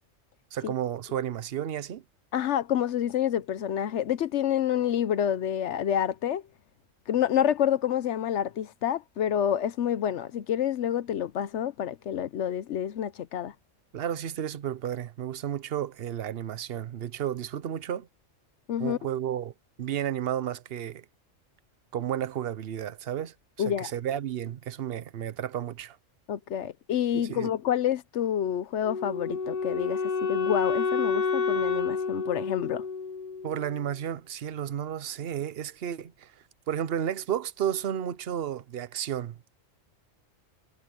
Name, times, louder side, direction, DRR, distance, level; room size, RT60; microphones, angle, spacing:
voice 1, 0.5-2.0 13.9-18.1 18.8-19.5 19.8-21.0 21.9-23.3 23.6-26.0 27.1-27.5 33.4-36.3 36.7-39.6, right 10 dB, 55° right, 0.9 m, -32 dB
voice 2, 2.3-6.4 7.1-13.5 18.7-19.0 23.6-23.9 26.3-32.8, left 10 dB, 70° left, 0.9 m, -28 dB
Wind instrument woodwind instrument, 28.8-33.9, left 5 dB, 35° left, 0.8 m, -29 dB
omnidirectional pair, 1.3 m